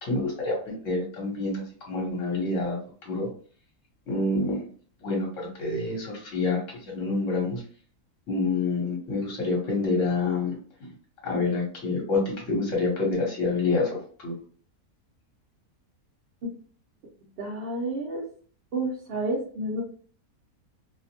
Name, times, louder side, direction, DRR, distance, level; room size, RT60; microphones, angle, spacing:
voice 1, 0.0-2.8 3.0-3.3 4.1-4.6 5.0-7.6 8.3-10.5 10.8-10.9 11.2-14.3, left 3 dB, 60° left, -2 dB, 1.3 m, -27 dB
voice 2, 17.4-18.2 18.7-19.8, right 1 dB, 65° right, -3 dB, 0.6 m, -30 dB
2.7 x 2.1 x 2.8 m, 0.44 s
omnidirectional pair, 1.6 m